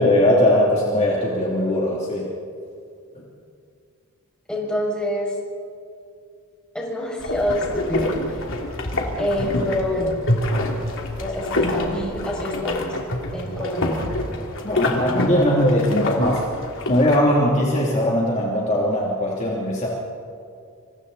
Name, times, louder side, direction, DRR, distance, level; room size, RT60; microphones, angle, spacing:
voice 1, 0.0-2.3 3.1-3.2 14.6-16.5 16.9-19.9, left 1 dB, 30° left, -4 dB, 2.9 m, -20 dB
voice 2, 4.5-5.3 6.7-8.1 9.2-10.2 11.2-12.9 13.3-14.0, left 1 dB, 5° left, -4 dB, 6.4 m, -26 dB
sound 1, 7.2-17.2, left 1 dB, 60° left, 2.9 m, -26 dB
27.0 x 26.0 x 4.2 m, 2.3 s
head